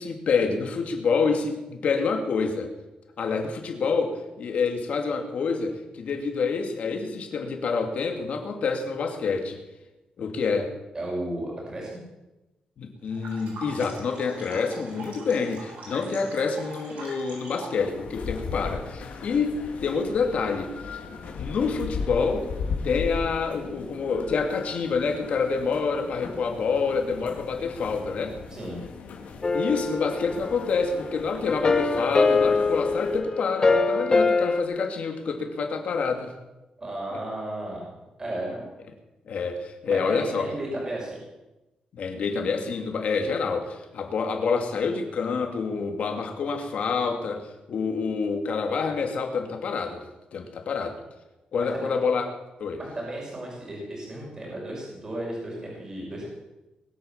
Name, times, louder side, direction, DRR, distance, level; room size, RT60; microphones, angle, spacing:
voice 1, 0.0-2.7 3.2-9.6 10.2-10.7 12.8-21.0 21.3-22.5 22.8-28.4 29.5-36.3 37.1-37.2 39.3-40.5 41.9-50.1 50.3-51.0 51.5-52.3 52.6-52.8, left 5 dB, 60° left, 3 dB, 2.7 m, -27 dB
voice 2, 10.9-11.9 28.5-28.8 36.8-37.9 38.2-38.6 39.9-41.2 51.6-51.9 52.8-56.3, right 1 dB, 25° right, -3 dB, 5.7 m, -34 dB
sound 1, 13.1-17.8, right 3 dB, 90° right, 7.3 m, -43 dB
sound 2, 17.8-33.2, left 5 dB, 90° left, 2.7 m, -37 dB
sound 3, 29.4-31.0 31.5-34.6, left 3 dB, 30° left, 1.4 m, -23 dB
21.5 x 8.8 x 7.4 m, 1.0 s
wide cardioid pair, 145°, 2 cm